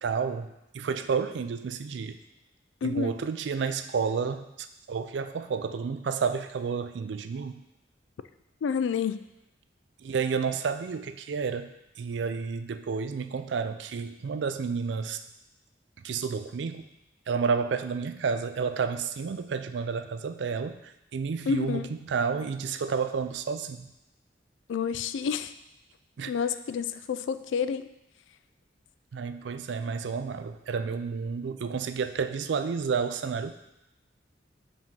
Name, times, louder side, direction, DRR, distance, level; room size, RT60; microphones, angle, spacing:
voice 1, 0.0-2.2 2.8-7.6 10.0-15.2 16.0-16.9 17.3-23.9 26.2-26.3 29.1-33.5, right 5 dB, 70° right, 11 dB, 0.4 m, -31 dB
voice 2, 2.8-3.1 8.6-9.2 21.5-21.9 24.7-25.5 26.3-27.9, left 6 dB, 85° left, 12 dB, 0.3 m, -29 dB
5.1 x 3.6 x 5.3 m, 0.89 s
head